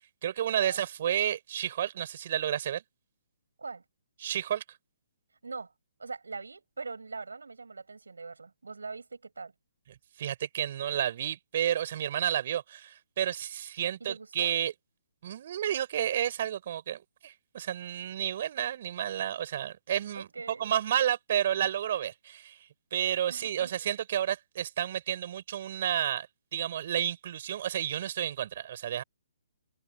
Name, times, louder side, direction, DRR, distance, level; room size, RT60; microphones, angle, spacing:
voice 1, 0.2-2.8 4.2-4.6 10.2-14.7 15.2-20.3 20.6-22.6 22.9-26.3 26.5-29.0, right 10 dB, 50° right, 5.9 m, -31 dB
voice 2, 6.0-9.5 14.0-14.5 20.1-20.7 23.3-23.7, right 4 dB, 85° right, 6.6 m, -42 dB
hypercardioid pair, 145°, 0 cm